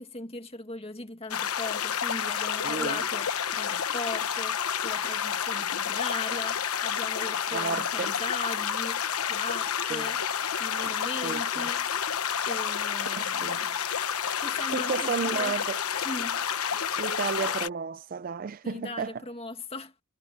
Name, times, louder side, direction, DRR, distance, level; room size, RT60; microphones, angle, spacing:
voice 1, 0.0-10.2 10.6-11.9 12.5-13.8 14.4-15.6 16.0-16.5 18.6-19.9, left 2 dB, 25° left, 2.0 m, -39 dB
sound 1, 1.3-17.7, left 8 dB, 85° left, 1.0 m, -30 dB
voice 2, 2.6-3.0 7.5-8.2 9.9-10.1 11.2-11.4 13.1-13.6 14.7-15.8 17.0-19.1, right 5 dB, 40° right, 0.3 m, -32 dB
head